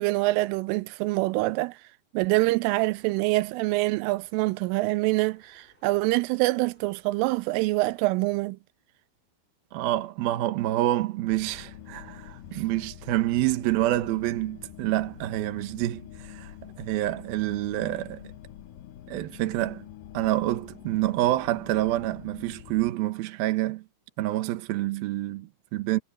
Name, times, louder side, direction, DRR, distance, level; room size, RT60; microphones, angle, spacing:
voice 1, 0.0-1.8 2.1-8.6 12.5-12.6, right 21 dB, 85° right, 3.2 m, -25 dB
sound 1, 2.9-8.0, left 1 dB, 10° left, 7.8 m, -62 dB
voice 2, 9.7-18.2 19.1-19.8 20.1-23.8 24.2-26.0, right 15 dB, 65° right, 2.5 m, -27 dB
sound 2, 11.3-22.9, left 11 dB, 75° left, 1.9 m, -46 dB
omnidirectional pair, 5.7 m